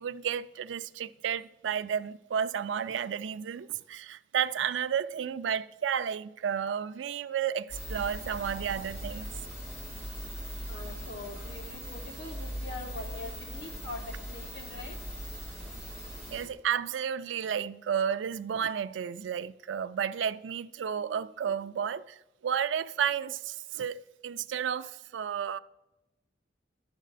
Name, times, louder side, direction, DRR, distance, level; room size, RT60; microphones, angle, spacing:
voice 1, 0.0-9.3 16.3-25.6, right 8 dB, 85° right, 0.4 m, -32 dB
sound 1, 7.7-16.5, equal, 15° left, 3.0 m, -40 dB
voice 2, 10.7-15.0, left 2 dB, 75° left, 1.5 m, -43 dB
11.0 x 7.3 x 4.1 m
head